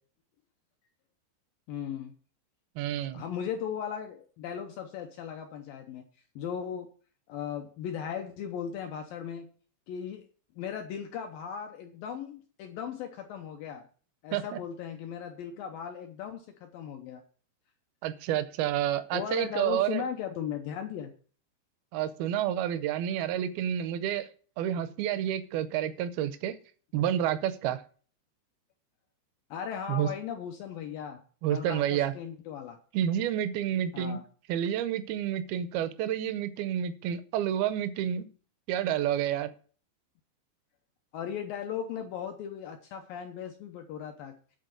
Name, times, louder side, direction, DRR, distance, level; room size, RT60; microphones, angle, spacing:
voice 1, 1.7-2.1 3.1-6.0 6.4-6.9 7.3-9.5 9.9-10.2 10.6-13.9 14.2-17.2 19.1-21.1 29.5-31.2 31.5-32.8 33.9-34.2 41.1-44.4, left 8 dB, 80° left, 5 dB, 2.1 m, -37 dB
voice 2, 2.8-3.2 14.3-14.6 18.0-20.0 21.9-24.3 24.6-26.6 26.9-27.8 29.9-30.1 31.4-32.1 32.9-34.2 34.5-38.3 38.7-39.5, right 10 dB, 75° right, 12 dB, 2.3 m, -29 dB
10.5 x 4.4 x 7.8 m, 0.42 s
omnidirectional pair, 5.0 m